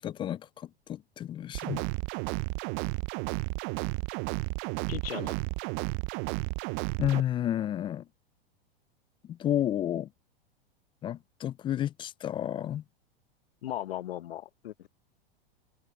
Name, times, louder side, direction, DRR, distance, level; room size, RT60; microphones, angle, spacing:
voice 1, 0.0-1.8 7.0-8.0 9.3-10.1 11.0-12.8, left 11 dB, 20° left, 0.3 m, -31 dB
sound 1, 1.5-7.2, right 29 dB, 40° right, 0.5 m, -33 dB
voice 2, 4.9-5.4 13.6-14.9, left 12 dB, 85° left, 0.5 m, -37 dB
hypercardioid pair, 110°, 29 cm